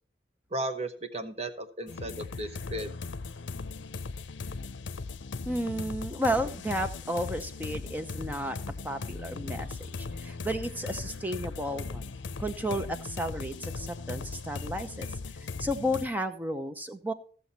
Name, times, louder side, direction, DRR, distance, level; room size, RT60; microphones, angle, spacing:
voice 1, 0.5-2.9, right 1 dB, 35° right, 8 dB, 1.0 m, -35 dB
sound 1, 1.9-16.1, left 4 dB, 80° left, 0.6 m, -38 dB
voice 2, 5.4-8.6 8.8-12.1 12.4-15.1 15.6-17.1, equal, 10° right, 8 dB, 0.8 m, -32 dB
15.5 x 7.1 x 4.2 m, 0.42 s
head